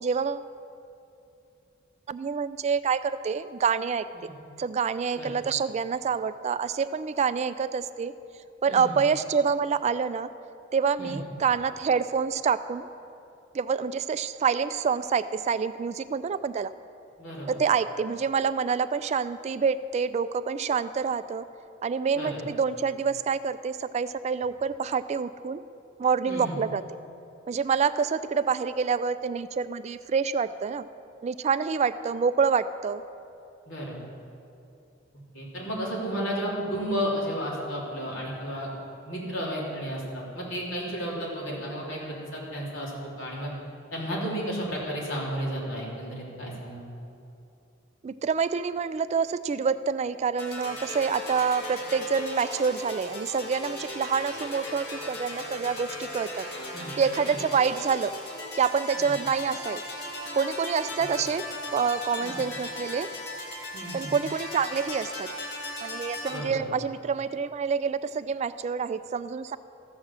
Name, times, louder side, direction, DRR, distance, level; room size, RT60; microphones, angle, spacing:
voice 1, 0.0-0.5 2.1-4.1 4.6-8.1 8.6-10.3 10.7-12.9 13.5-16.7 17.5-21.4 21.8-25.6 26.0-26.8 27.5-30.8 31.2-33.0 48.0-56.5 57.0-58.1 58.5-59.8 60.3-61.4 61.7-63.1 63.9-65.3 65.8-69.6, right 6 dB, 35° right, 13 dB, 0.3 m, -27 dB
voice 2, 8.7-9.0 11.0-11.2 17.2-17.6 22.1-22.5 26.3-26.6 33.7-34.0 35.3-38.7 39.0-42.9 43.2-43.5 43.9-46.9 56.7-56.9 57.3-57.4 59.0-59.1 61.1-61.2 62.2-62.4 63.7-64.1 66.3-66.7, equal, 85° left, -5 dB, 3.3 m, -33 dB
sound 1, 50.4-66.4, left 1 dB, 60° left, 1.9 m, -37 dB
14.0 x 6.3 x 7.3 m, 2.6 s
head